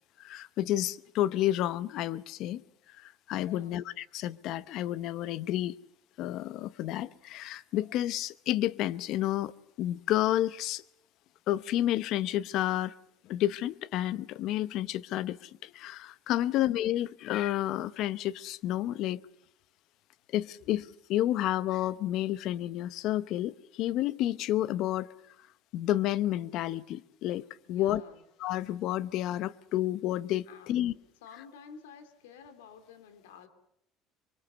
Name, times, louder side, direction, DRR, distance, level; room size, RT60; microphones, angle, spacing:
voice 1, 0.2-2.6 3.0-5.7 6.2-9.5 9.8-10.8 11.5-12.9 13.2-19.2 20.3-25.1 25.7-28.0 28.4-30.9, left 13 dB, 65° left, 0.8 m, -30 dB
voice 2, 3.5-3.8 16.4-16.7 27.7-28.2 30.5-33.5, left 6 dB, 85° left, 2.7 m, -51 dB
24.0 x 23.5 x 6.9 m
supercardioid pair, 80°, 0 cm